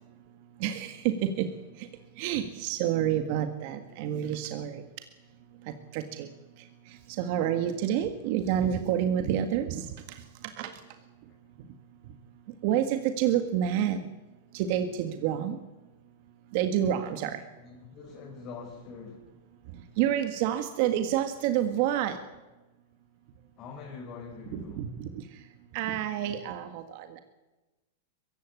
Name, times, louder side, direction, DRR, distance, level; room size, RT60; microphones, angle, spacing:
voice 1, 0.6-1.5 1.8-1.9 2.2-4.9 5.6-6.3 6.6-10.7 12.6-14.1 14.5-15.6 16.5-17.4 20.0-22.2 24.5-25.4 25.7-27.2, right 10 dB, 55° right, 1.8 m, -29 dB
voice 2, 17.6-19.2 23.6-24.8, left 5 dB, 35° left, 5.3 m, -43 dB
22.0 x 16.0 x 9.8 m
supercardioid pair, 140°, 0 cm